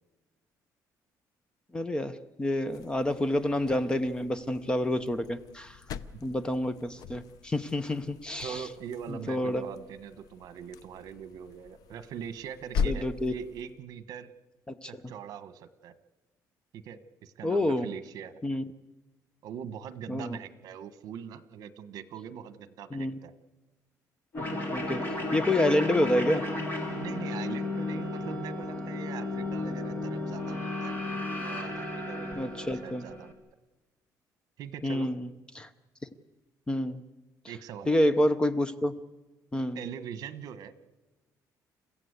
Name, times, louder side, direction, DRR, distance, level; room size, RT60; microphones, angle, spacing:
voice 1, 1.7-5.8 6.2-8.6 9.1-9.6 12.8-13.3 14.8-14.9 17.4-17.9 18.4-18.6 20.1-20.4 22.9-23.2 24.7-26.4 32.4-33.0 34.8-35.3 35.5-35.7 36.7-37.0 37.9-39.0 39.5-39.8, left 1 dB, 15° left, 13 dB, 0.8 m, -28 dB
sound 1, 2.6-13.8, left 6 dB, 65° left, 0.7 m, -40 dB
voice 2, 8.4-14.3 14.9-15.9 16.7-18.3 19.4-23.3 26.9-31.0 31.4-33.3 34.6-35.1 37.5-38.0 39.7-40.9, right 8 dB, 65° right, 13 dB, 1.3 m, -42 dB
sound 2, 24.3-33.3, left 2 dB, 30° left, 3.3 m, -34 dB
30.0 x 15.5 x 8.2 m, 1.1 s
cardioid pair, 160°, 7 cm